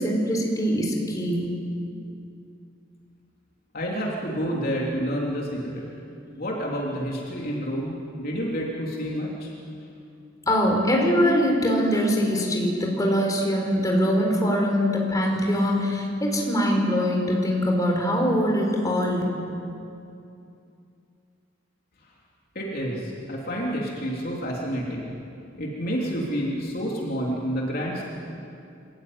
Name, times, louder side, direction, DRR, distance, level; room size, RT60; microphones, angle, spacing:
voice 1, 0.0-1.5 10.4-19.2, equal, 20° left, 0 dB, 4.6 m, -23 dB
voice 2, 3.7-5.9 6.3-9.5 22.5-25.1 25.6-28.0, equal, 55° left, -3 dB, 3.3 m, -29 dB
25.0 x 15.5 x 9.7 m, 2.6 s
head